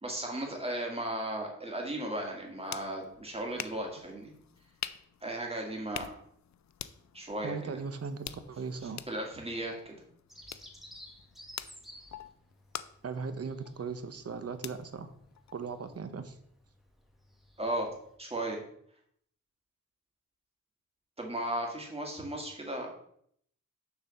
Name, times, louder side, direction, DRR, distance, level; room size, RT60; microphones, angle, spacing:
voice 1, 0.0-4.3 5.2-6.2 7.1-7.8 9.1-10.0 17.6-17.9 18.2-18.6 21.2-22.9, right 1 dB, 20° right, 0 dB, 2.1 m, -36 dB
sound 1, 2.3-16.0, left 9 dB, 65° left, 0.5 m, -47 dB
voice 2, 7.4-9.0 13.0-15.1 15.5-16.4, right 5 dB, 55° right, 10 dB, 0.8 m, -38 dB
Bird vocalization bird call bird song, 10.3-18.2, equal, ahead, 1.2 m, -55 dB
7.0 x 4.1 x 6.5 m, 0.67 s
wide cardioid pair, 110°, 30 cm